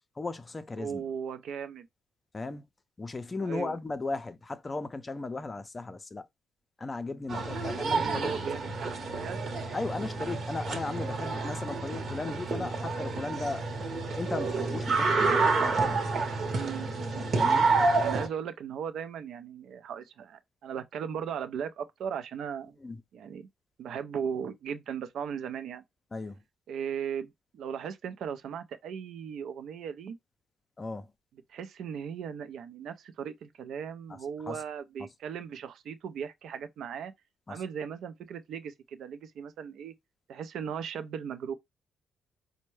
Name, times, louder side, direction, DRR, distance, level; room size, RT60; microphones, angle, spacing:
voice 1, 0.2-1.0 2.3-2.6 3.0-6.3 6.8-8.3 9.7-13.7 14.2-16.1 17.3-17.7 22.8-23.0 26.1-26.4 30.8-31.1 34.1-34.2 34.5-34.6 37.5-37.6, left 3 dB, 25° left, 0.5 m, -36 dB
voice 2, 0.8-1.9 3.4-3.8 7.9-9.6 16.5-16.9 18.0-22.8 23.1-23.5 23.8-25.8 26.7-30.2 31.5-37.1 37.5-39.9 40.3-41.5, right 7 dB, 70° right, 0.5 m, -37 dB
sound 1, 7.3-18.3, right 3 dB, 55° right, 0.9 m, -29 dB
4.3 x 2.1 x 3.1 m
cardioid pair, 90°, 0 cm